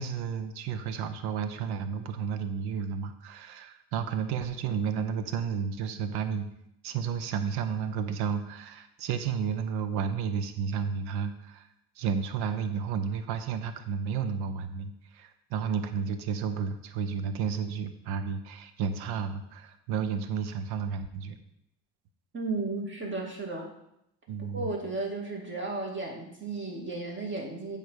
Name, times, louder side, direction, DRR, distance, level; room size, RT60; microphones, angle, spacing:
voice 1, 0.0-6.5 6.8-11.7 12.0-21.4 24.3-24.7, right 6 dB, 80° right, 10 dB, 0.9 m, -32 dB
voice 2, 22.3-23.7 24.5-27.8, right 3 dB, 30° right, 0 dB, 2.4 m, -34 dB
8.2 x 3.6 x 6.3 m, 0.79 s
supercardioid pair, 75°, 39 cm